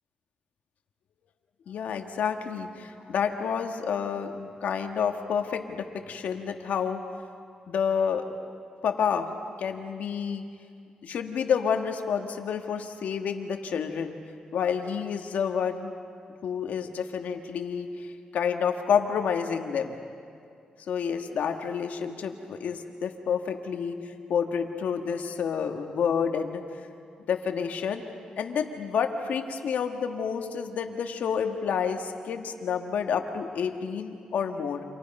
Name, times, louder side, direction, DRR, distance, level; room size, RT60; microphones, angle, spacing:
voice 1, 1.7-7.0 7.7-8.2 8.8-9.3 9.6-10.4 11.0-14.2 14.5-15.9 16.4-18.1 18.3-19.9 20.9-26.6 27.3-28.0 28.4-34.8, left 7 dB, 80° left, 5 dB, 1.6 m, -29 dB
29.0 x 26.0 x 5.5 m, 2.3 s
cardioid pair, 80°, 3 cm